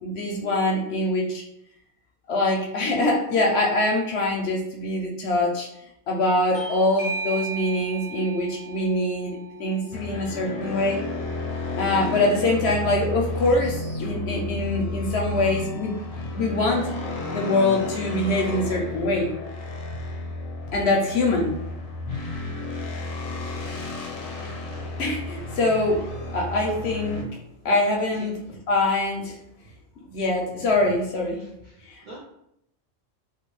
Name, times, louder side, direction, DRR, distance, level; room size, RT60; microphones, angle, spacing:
voice 1, 0.0-1.4 2.3-5.7 6.1-11.0 11.8-15.9 16.3-16.8 17.3-19.3 20.7-21.6 25.0-26.0 26.3-27.2 27.6-28.3 28.7-29.4 30.1-31.4 31.9-32.0, left 2 dB, 65° left, 0 dB, 0.7 m, -24 dB
Bell / Doorbell, 6.5-11.7, right 4 dB, 35° left, 0.4 m, -37 dB
sound 1, 9.9-27.2, left 2 dB, 85° left, 1.0 m, -32 dB
voice 2, 31.4-32.2, right 3 dB, 55° right, -5 dB, 0.5 m, -44 dB
3.0 x 2.3 x 3.0 m, 0.78 s
omnidirectional pair, 1.4 m